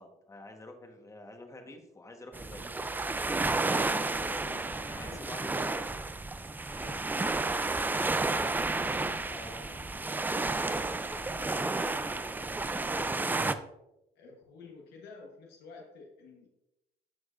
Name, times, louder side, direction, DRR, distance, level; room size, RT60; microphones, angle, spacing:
voice 1, 0.0-2.7 4.7-5.8 9.3-9.6, left 2 dB, 20° left, 5 dB, 1.1 m, -48 dB
sound 1, 2.3-13.5, right 3 dB, 10° right, 0.3 m, -31 dB
voice 2, 3.8-5.5 6.6-8.6 8.9-9.3 9.6-9.9 11.1-13.6 14.1-16.5, left 4 dB, 75° left, -1 dB, 1.2 m, -50 dB
13.0 x 4.7 x 2.4 m, 0.90 s
cardioid pair, 110°, 17 cm